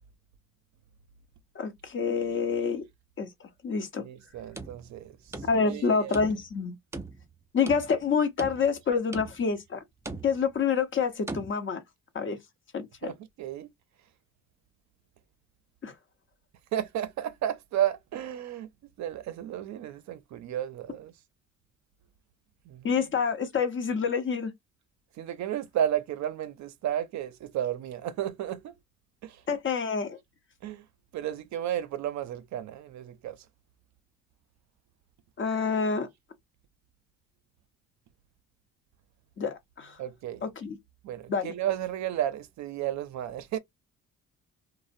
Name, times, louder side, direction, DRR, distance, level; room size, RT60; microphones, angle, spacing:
voice 1, 1.6-2.8 3.2-3.3 3.6-4.0 5.4-6.8 7.5-9.8 10.2-11.8 12.1-12.4 12.7-13.1 15.8-15.9 22.8-24.5 29.5-30.2 35.4-36.1 39.4-40.0 40.4-40.8 41.3-41.5, left 5 dB, 40° left, 0.7 m, -27 dB
voice 2, 4.0-5.2 5.6-6.2 13.0-13.7 16.7-18.7 19.0-21.1 22.7-22.9 25.2-28.8 29.2-29.4 30.6-30.8 31.1-33.4 40.0-40.5 41.0-43.6, right 11 dB, 65° right, 0.5 m, -33 dB
sound 1, 4.4-5.8 6.1-6.6 6.9-8.0 8.4-8.8 9.1-9.6 10.1-10.6 11.3-11.5, right 2 dB, 10° right, 0.4 m, -40 dB
2.5 x 2.0 x 2.4 m
cardioid pair, 90°, 30 cm